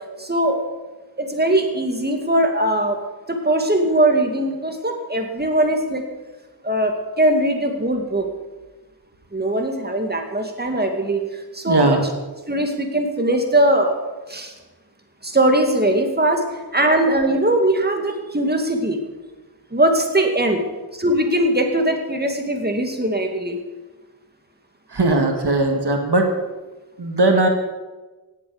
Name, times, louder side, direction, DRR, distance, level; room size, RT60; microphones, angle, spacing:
voice 1, 0.2-0.6 1.2-3.0 3.3-6.0 6.6-8.3 9.3-12.0 12.5-14.0 14.3-14.5 15.2-16.4 16.7-19.0 19.7-20.6 21.0-23.6, right 1 dB, 25° right, 3 dB, 2.2 m, -20 dB
voice 2, 11.7-12.1 24.9-26.3 27.0-27.5, right 2 dB, 75° right, 3 dB, 1.9 m, -18 dB
17.0 x 8.3 x 7.1 m, 1.2 s
wide cardioid pair, 50°, 40 cm